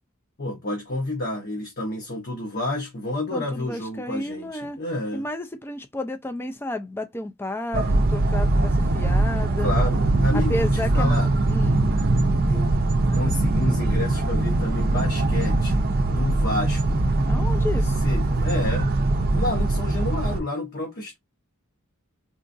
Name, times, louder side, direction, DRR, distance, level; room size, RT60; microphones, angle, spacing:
voice 1, 0.4-5.3 9.6-11.3 12.1-12.2 12.5-12.7 13.1-17.0 18.0-18.9 19.3-21.2, left 1 dB, 45° left, 1.0 m, -29 dB
voice 2, 3.3-4.8 5.1-9.7 10.3-11.2 11.5-11.8 17.3-18.0, left 1 dB, 10° left, 0.4 m, -31 dB
sound 1, 7.7-20.4, right 2 dB, 45° right, 0.5 m, -22 dB
3.8 x 2.4 x 2.6 m
head